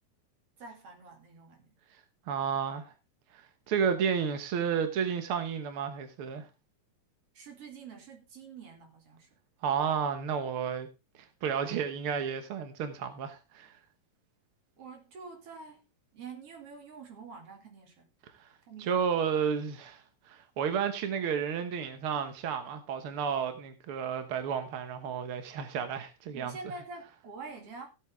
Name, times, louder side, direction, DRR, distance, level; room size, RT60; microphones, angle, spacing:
voice 1, 0.6-1.7 7.3-9.3 14.8-15.8 16.1-18.1 18.7-19.0 26.3-27.9, right 4 dB, 45° right, 3.1 m, -46 dB
voice 2, 2.3-2.9 3.3-6.5 9.6-10.9 11.4-13.7 18.4-18.5 18.8-20.0 20.3-26.6, right 7 dB, 65° right, 1.3 m, -32 dB
16.0 x 8.1 x 3.5 m
omnidirectional pair, 4.0 m